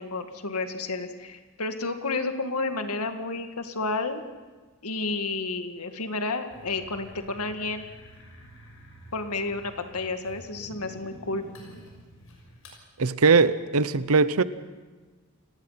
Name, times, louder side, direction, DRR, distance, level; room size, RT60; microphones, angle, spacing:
voice 1, 0.0-4.2 4.8-7.9 9.1-11.4, left 3 dB, 85° left, 7 dB, 1.9 m, -31 dB
sound 1, 6.5-12.8, equal, 70° left, 6.5 m, -49 dB
voice 2, 13.0-14.4, right 4 dB, 80° right, 15 dB, 0.8 m, -20 dB
29.0 x 18.5 x 5.8 m, 1.3 s
head